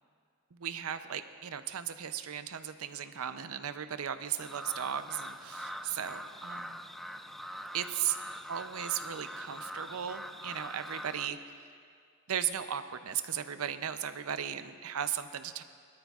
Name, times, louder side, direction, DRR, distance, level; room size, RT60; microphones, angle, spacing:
voice 1, 0.5-6.8 7.7-8.2 8.5-11.5 12.3-15.6, right 9 dB, 80° right, 10 dB, 0.6 m, -36 dB
sound 1, 4.4-11.3, equal, ahead, 0.3 m, -43 dB
21.5 x 13.0 x 2.4 m, 2.3 s
head